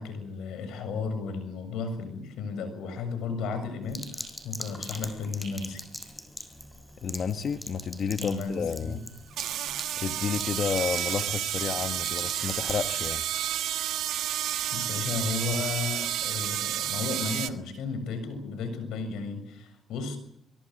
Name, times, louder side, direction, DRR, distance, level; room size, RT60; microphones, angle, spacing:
voice 1, 0.0-5.8 8.2-9.0 14.7-20.2, left 4 dB, 85° left, 11 dB, 7.0 m, -34 dB
Sink (filling or washing), 3.9-13.2, left 1 dB, 10° left, 6.6 m, -42 dB
voice 2, 7.0-9.0 10.0-13.2, left 6 dB, 55° left, 7 dB, 1.4 m, -31 dB
sound 1, 8.5-8.6 9.3-17.5, right 12 dB, 85° right, 1.5 m, -31 dB
25.5 x 23.0 x 7.8 m, 0.72 s
cardioid pair, 90°, 0 cm